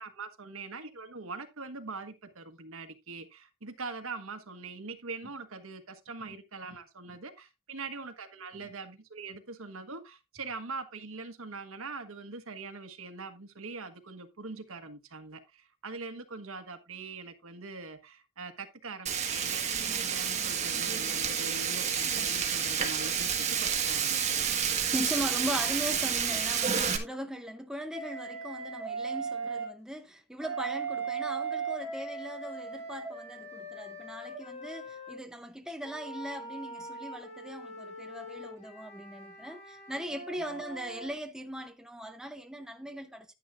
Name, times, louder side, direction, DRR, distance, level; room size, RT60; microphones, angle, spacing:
voice 1, 0.0-24.2, right 3 dB, 75° right, 1.4 m, -42 dB
Frying (food), 19.1-27.0, right 7 dB, 30° right, 1.5 m, -30 dB
voice 2, 24.9-43.3, equal, 5° right, 0.7 m, -39 dB
Wind instrument woodwind instrument, 27.9-29.7 30.4-35.2 35.8-41.1, right 4 dB, 30° left, 3.9 m, -39 dB
10.5 x 10.0 x 2.5 m
head